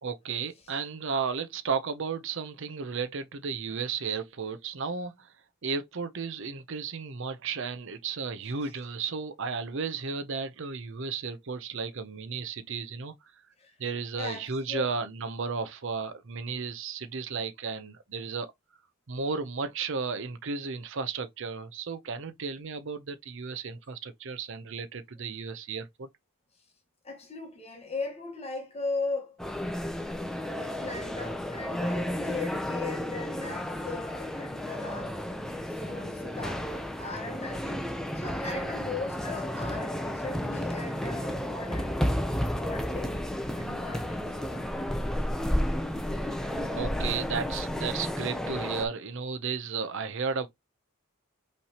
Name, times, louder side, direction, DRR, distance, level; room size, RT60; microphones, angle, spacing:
voice 1, 0.0-5.3 5.6-13.1 13.8-18.5 19.1-26.1 46.7-50.5, right 5 dB, 60° right, 0.6 m, -34 dB
voice 2, 14.1-14.9 27.0-29.4 30.6-35.2 35.8-37.9 38.1-42.0 42.5-43.2 43.5-44.7, left 3 dB, 30° left, 1.2 m, -38 dB
sound 1, 29.4-48.9, left 1 dB, ahead, 0.5 m, -32 dB
5.6 x 3.2 x 2.8 m
head